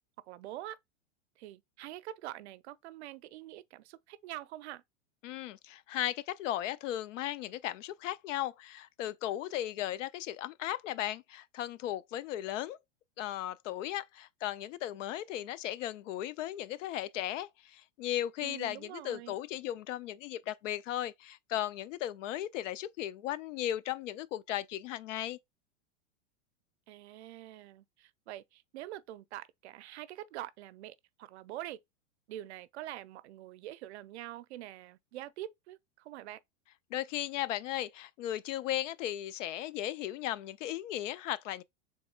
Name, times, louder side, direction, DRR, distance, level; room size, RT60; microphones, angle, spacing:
voice 1, 0.2-0.8 1.4-4.8 18.4-19.4 26.9-31.8 32.3-36.4, right 14 dB, 65° right, 0.5 m, -45 dB
voice 2, 5.2-12.8 13.2-25.4 36.9-41.6, left 12 dB, 85° left, 0.5 m, -36 dB
3.5 x 3.1 x 4.2 m
supercardioid pair, 170°, 36 cm